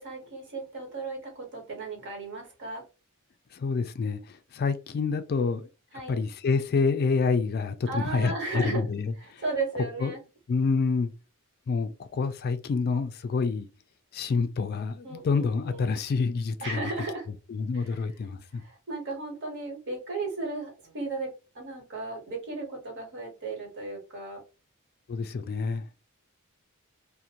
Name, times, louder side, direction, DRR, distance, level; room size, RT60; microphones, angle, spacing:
voice 1, 0.0-2.8 5.9-6.2 7.9-8.8 9.2-10.2 15.0-15.9 16.6-17.3 17.7-18.0 18.5-24.4, right 3 dB, 55° right, 1.1 m, -35 dB
voice 2, 3.5-5.7 6.1-9.1 10.0-10.1 10.5-11.1 11.7-13.7 14.1-16.8 17.5-18.6 25.1-25.9, left 4 dB, 45° left, 0.3 m, -27 dB
2.5 x 2.1 x 2.8 m
head